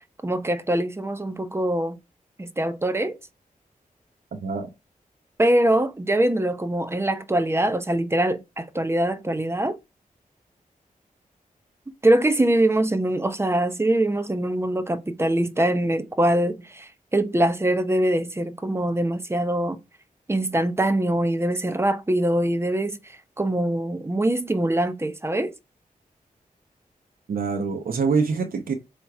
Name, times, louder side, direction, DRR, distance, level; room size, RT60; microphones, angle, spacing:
voice 1, 0.2-2.0 2.4-3.2 5.4-9.8 12.0-19.8 20.3-23.0 23.4-25.5, right 1 dB, 15° right, 1.0 m, -23 dB
voice 2, 4.3-4.7 27.3-28.7, right 5 dB, 80° right, 1.1 m, -25 dB
8.6 x 3.3 x 5.9 m
wide cardioid pair, 115°, 15 cm